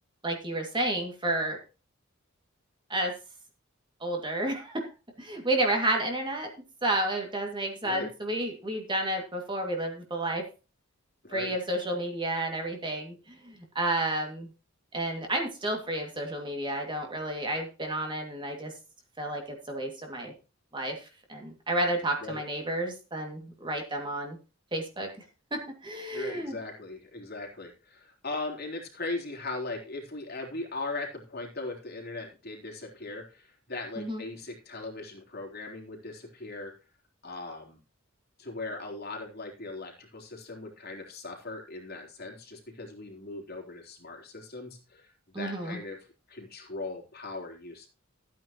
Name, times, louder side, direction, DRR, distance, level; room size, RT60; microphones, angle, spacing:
voice 1, 0.2-1.6 2.9-3.1 4.0-4.9 5.2-6.5 6.8-10.4 11.3-14.5 14.9-18.7 19.2-20.3 20.7-21.0 21.3-24.4 24.7-25.1 25.5-26.5 34.0-34.2 45.3-45.8, right 1 dB, 25° right, 2 dB, 2.3 m, -31 dB
voice 2, 11.2-11.5 22.0-22.4 26.1-36.7 37.2-37.8 38.4-47.9, left 3 dB, 50° left, 1 dB, 3.6 m, -39 dB
14.5 x 9.3 x 3.0 m, 0.32 s
head